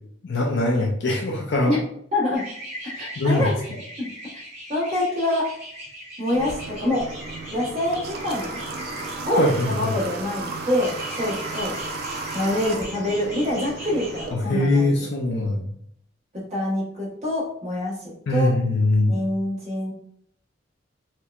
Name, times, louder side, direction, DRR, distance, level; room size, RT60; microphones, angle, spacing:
voice 1, 0.2-1.8 3.2-3.5 9.4-9.9 14.3-15.7 18.3-19.2, left 2 dB, 65° left, 0 dB, 0.5 m, -22 dB
voice 2, 2.1-2.4 2.9-3.5 4.3-4.4 4.7-5.5 6.2-7.1 7.5-8.6 9.2-11.7 12.3-14.9 16.5-17.9 18.3-18.5 19.1-19.9, left 1 dB, 35° right, -6 dB, 1.1 m, -25 dB
sound 1, 2.3-10.3 10.8-14.3, right 1 dB, 15° right, 1.4 m, -40 dB
Water / Water tap faucet, 6.3-14.3, right 3 dB, 55° right, 0.4 m, -34 dB
4.3 x 2.1 x 2.4 m, 0.69 s
head